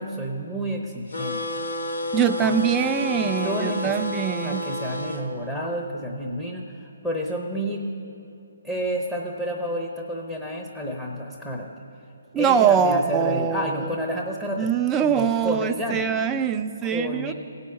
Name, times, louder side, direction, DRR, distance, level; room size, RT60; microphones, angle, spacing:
voice 1, 0.0-1.4 2.0-2.1 2.4-2.6 3.2-7.9 8.6-11.7 12.4-14.7 15.0-16.0 16.8-17.3, equal, 10° left, -2 dB, 0.9 m, -30 dB
sound 1, 1.1-5.2, left 2 dB, 80° left, 1.4 m, -30 dB
voice 2, 2.1-4.6 12.3-13.9 14.6-17.3, right 8 dB, 15° right, 7 dB, 0.5 m, -23 dB
17.0 x 5.7 x 6.4 m, 2.8 s
figure-of-eight pair, 145°, 0 cm